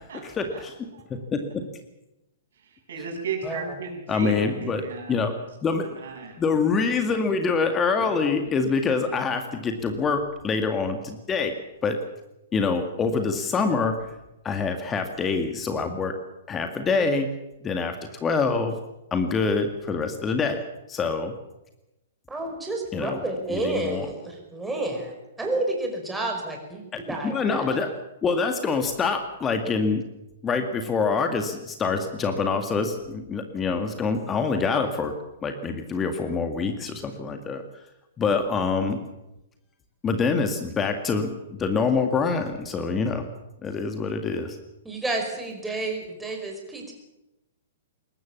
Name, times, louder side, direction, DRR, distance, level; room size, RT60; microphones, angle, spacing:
voice 1, 0.2-0.8 1.1-1.6 4.1-6.0 6.4-11.5 11.8-12.0 12.5-13.9 14.4-16.1 16.5-17.3 17.6-18.8 19.1-21.3 22.9-23.2 23.5-24.1 27.2-27.9 28.2-30.0 30.4-35.1 35.4-37.6 38.2-39.0 40.0-43.3 43.6-44.6, left 4 dB, 20° left, 6 dB, 2.0 m, -25 dB
voice 2, 2.6-5.2 6.0-6.4, right 5 dB, 60° right, 2 dB, 7.3 m, -35 dB
voice 3, 3.4-3.8 22.3-27.8 44.9-46.9, right 2 dB, 5° right, 1 dB, 5.3 m, -30 dB
21.5 x 19.0 x 7.3 m, 0.93 s
figure-of-eight pair, 115°, 0 cm